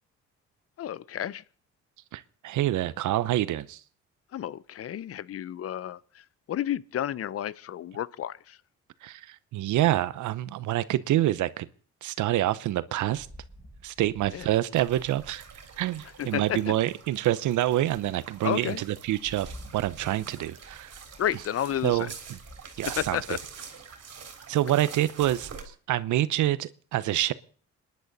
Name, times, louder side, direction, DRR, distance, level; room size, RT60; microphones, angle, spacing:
voice 1, 0.8-1.4 4.3-8.6 14.3-14.5 16.2-16.7 18.4-18.8 21.2-22.1 23.0-23.4, left 11 dB, 50° left, 0.6 m, -31 dB
voice 2, 2.1-3.8 9.0-11.7 12.0-13.3 13.8-15.4 15.8-20.9 21.8-22.1 22.8-23.2 24.5-25.5 25.9-27.3, right 14 dB, 75° right, 0.8 m, -27 dB
Rain, 13.0-16.5 17.0-17.1 17.6-24.2, right 1 dB, 10° right, 6.0 m, -51 dB
sound 1, 14.7-25.6, right 6 dB, 55° right, 3.4 m, -46 dB
27.0 x 10.5 x 4.0 m
cardioid pair, 90°, 30 cm